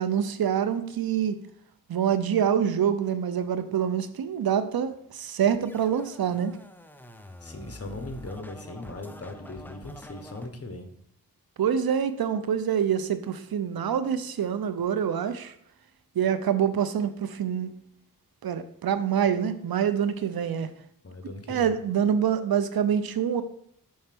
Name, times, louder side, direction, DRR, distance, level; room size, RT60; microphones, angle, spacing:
voice 1, 0.0-1.4 1.9-6.5 11.6-15.5 16.2-17.7 18.4-20.7 21.5-23.4, right 8 dB, 85° right, 11 dB, 0.6 m, -26 dB
Scratching (performance technique), 5.6-10.5, left 1 dB, 5° left, 0.7 m, -46 dB
voice 2, 7.4-10.9 21.0-21.7, left 2 dB, 40° left, 6 dB, 1.2 m, -39 dB
5.6 x 4.3 x 5.9 m, 0.71 s
cardioid pair, 50°, 35 cm